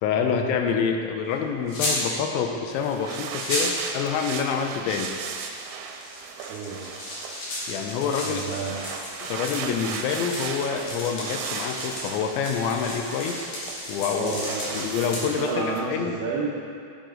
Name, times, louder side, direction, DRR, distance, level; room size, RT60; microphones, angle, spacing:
voice 1, 0.0-5.1 7.7-8.4 9.2-13.6 13.9-14.5 14.7-16.1, left 6 dB, 85° left, 4 dB, 3.0 m, -27 dB
sound 1, 1.7-2.0 3.0-3.1 3.4-3.8 5.1-15.2, left 1 dB, 55° left, 2.7 m, -34 dB
sound 2, 2.7-15.9, right 6 dB, 90° right, 3.1 m, -37 dB
voice 2, 6.5-6.8 8.2-8.8 14.2-16.5, right 4 dB, 70° right, -4 dB, 2.7 m, -31 dB
10.5 x 7.7 x 3.8 m, 2.3 s
omnidirectional pair, 5.3 m